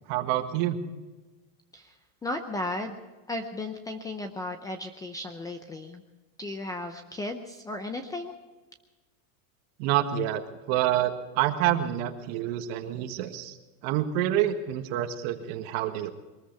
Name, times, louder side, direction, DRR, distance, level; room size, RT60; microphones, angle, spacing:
voice 1, 0.1-0.8 9.8-13.6 13.8-16.1, right 12 dB, 50° right, 7 dB, 1.6 m, -27 dB
voice 2, 2.2-3.0 3.3-6.0 6.4-8.3, left 2 dB, 10° left, 7 dB, 0.6 m, -35 dB
22.5 x 14.0 x 4.6 m, 1.2 s
supercardioid pair, 155°, 42 cm